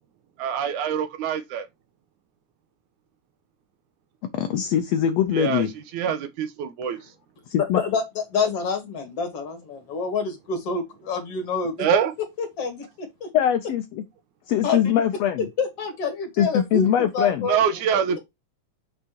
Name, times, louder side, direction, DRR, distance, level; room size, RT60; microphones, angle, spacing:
voice 1, 0.4-1.7 5.3-5.7 5.9-7.0 11.8-12.1 17.5-18.2, right 8 dB, 80° right, 2.4 m, -24 dB
voice 2, 4.3-5.7 7.5-7.8 13.3-14.0 14.5-15.5 16.4-17.5, left 10 dB, 75° left, 1.6 m, -22 dB
voice 3, 7.7-11.7 12.4-13.3 14.6-14.8 15.6-17.6, left 4 dB, 55° left, 2.7 m, -27 dB
6.6 x 6.0 x 2.9 m
omnidirectional pair, 3.5 m